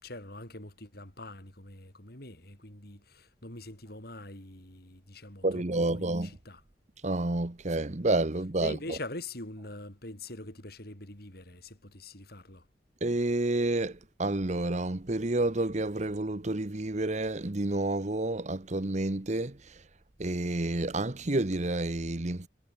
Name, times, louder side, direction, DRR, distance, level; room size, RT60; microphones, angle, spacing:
voice 1, 0.0-6.6 8.6-12.7, left 2 dB, 60° left, 5.8 m, -44 dB
voice 2, 5.4-6.3 7.0-9.0 13.0-19.6 20.2-22.5, right 2 dB, 40° right, 1.1 m, -29 dB
head